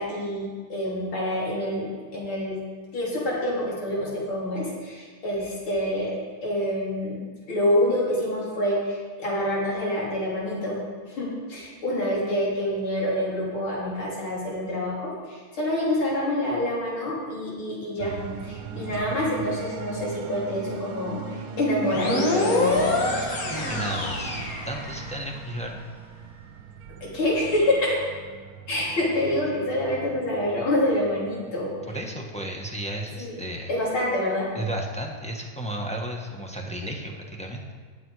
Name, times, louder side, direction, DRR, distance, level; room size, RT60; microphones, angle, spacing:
voice 1, 0.0-2.6 2.9-7.2 7.5-18.2 18.4-23.3 27.0-28.0 28.7-32.0 33.2-33.4 33.7-34.5, left 1 dB, 75° left, -5 dB, 4.2 m, -27 dB
sound 1, 18.0-33.1, right 6 dB, 80° right, 1.6 m, -39 dB
sound 2, 21.8-25.3, left 2 dB, 45° left, 1.9 m, -26 dB
voice 2, 23.5-24.4 24.6-25.8 31.9-33.7 34.5-37.7, right 1 dB, 5° left, -1 dB, 0.9 m, -33 dB
19.5 x 7.2 x 4.9 m, 1.5 s
omnidirectional pair, 2.3 m